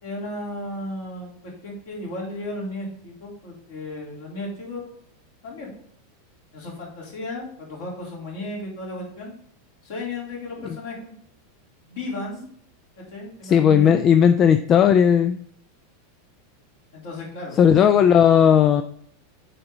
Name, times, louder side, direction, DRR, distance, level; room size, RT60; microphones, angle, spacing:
voice 1, 0.0-4.8 5.4-5.7 6.5-9.3 9.8-11.1 11.8-12.5 13.0-14.0 16.9-17.6 17.9-18.0, left 2 dB, 55° left, -3 dB, 3.3 m, -34 dB
voice 2, 13.4-15.4 17.6-18.8, left 8 dB, 30° left, 9 dB, 0.4 m, -16 dB
7.7 x 4.9 x 3.8 m, 0.65 s
figure-of-eight pair, 85°, 0 cm